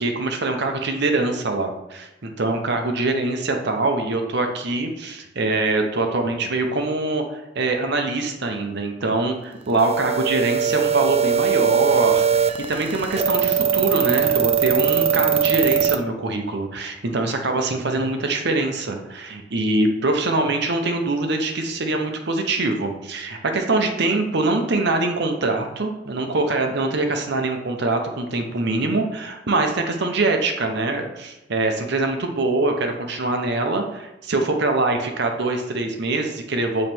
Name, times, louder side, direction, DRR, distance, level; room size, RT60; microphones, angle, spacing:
voice 1, 0.0-36.9, right 2 dB, 60° right, 4 dB, 0.8 m, -23 dB
sound 1, 9.8-16.0, right 7 dB, 30° right, 0.4 m, -20 dB
7.2 x 3.2 x 4.4 m, 0.95 s
head